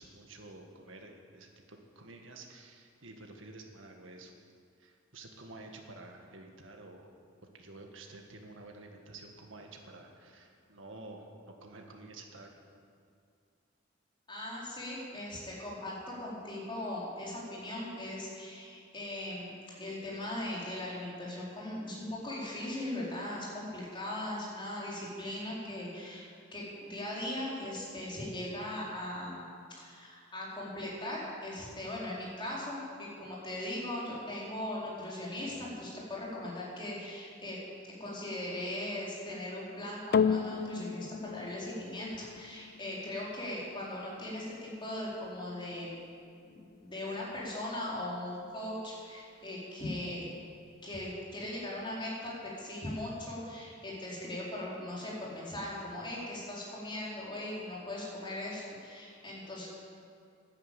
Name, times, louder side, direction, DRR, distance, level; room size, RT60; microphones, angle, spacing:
voice 1, 0.0-4.3 4.8-7.1 7.5-12.6, right 2 dB, 75° right, 3 dB, 1.8 m, -50 dB
voice 2, 14.3-19.5 19.8-26.3 26.5-29.4 29.8-37.6 38.0-45.9 46.5-50.3 50.8-59.7, left 1 dB, 25° left, -6 dB, 4.1 m, -39 dB
sound 1, 40.1-48.7 49.4-49.5, left 6 dB, 50° left, 0.3 m, -36 dB
11.5 x 10.5 x 8.3 m, 2.4 s
head